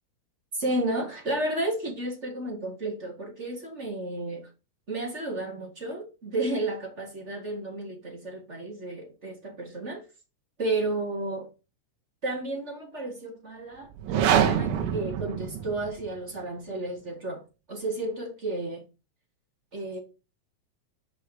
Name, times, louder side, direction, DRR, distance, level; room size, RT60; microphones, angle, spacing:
voice 1, 0.5-4.5 4.9-10.0 10.6-11.5 12.2-17.4 17.7-18.8 19.7-20.0, right 2 dB, 20° right, 2.4 m, -32 dB
sound 1, 13.9-16.1, right 9 dB, 80° right, 4.2 m, -25 dB
10.5 x 5.7 x 5.4 m
omnidirectional pair, 5.9 m